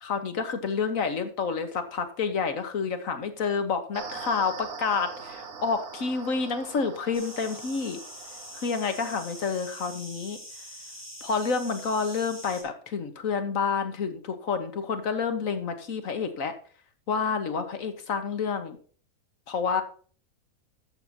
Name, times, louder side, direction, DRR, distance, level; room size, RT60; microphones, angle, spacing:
voice 1, 0.0-8.0 8.6-10.4 11.2-16.5 17.1-18.8 19.5-19.8, left 5 dB, 70° left, 8 dB, 1.7 m, -29 dB
sound 1, 3.9-9.5, right 5 dB, 80° right, 1.7 m, -42 dB
sound 2, 7.1-12.6, equal, 10° left, 3.6 m, -44 dB
13.5 x 7.8 x 2.8 m, 0.43 s
omnidirectional pair, 1.5 m